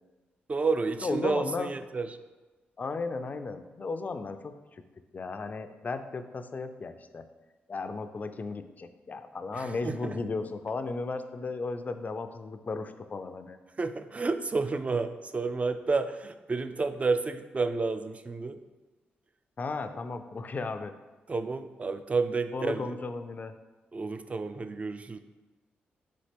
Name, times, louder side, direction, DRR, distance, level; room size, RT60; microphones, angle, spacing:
voice 1, 0.5-2.1 9.5-10.2 13.8-18.6 21.3-23.0 23.9-25.2, right 4 dB, 30° right, 10 dB, 0.3 m, -30 dB
voice 2, 1.0-1.7 2.8-4.8 5.1-7.2 7.7-13.6 19.6-20.9 22.5-23.6, left 3 dB, 40° left, 9 dB, 0.4 m, -35 dB
4.2 x 3.7 x 3.3 m, 1.2 s
supercardioid pair, 50°, 4 cm